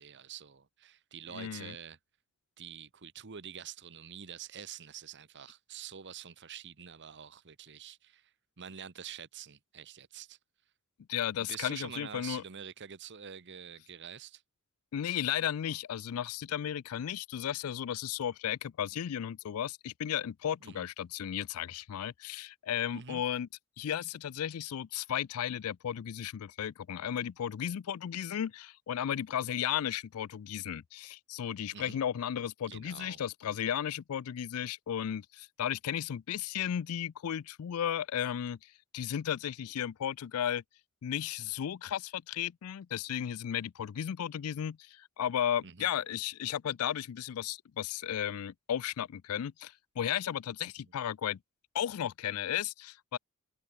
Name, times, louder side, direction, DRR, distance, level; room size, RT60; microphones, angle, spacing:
voice 1, 0.0-2.0 2.6-8.3 8.6-10.4 11.4-14.4 20.6-20.9 22.9-23.2 31.7-32.0 32.7-33.2 45.6-45.9, right 8 dB, 55° right, 1.0 m, -46 dB
voice 2, 1.3-1.7 11.1-12.4 14.9-23.5 23.8-40.6 41.0-51.4 51.7-53.2, left 9 dB, 75° left, 0.4 m, -34 dB
head